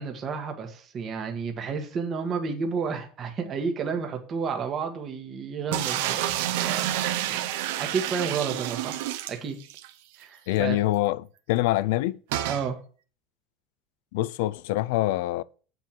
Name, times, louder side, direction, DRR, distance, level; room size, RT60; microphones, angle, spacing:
voice 1, 0.0-6.2 6.6-9.0 9.3-9.6 10.2-10.8 12.5-12.8, right 5 dB, 25° right, 1.5 m, -31 dB
sound 1, 5.7-9.9 10.2-10.3 10.6-10.7 12.3-12.7, right 13 dB, 75° right, 1.0 m, -29 dB
voice 2, 10.5-12.2 14.1-15.4, left 16 dB, 70° left, 0.4 m, -25 dB
8.4 x 4.5 x 7.3 m
cardioid pair, 180°, 0 cm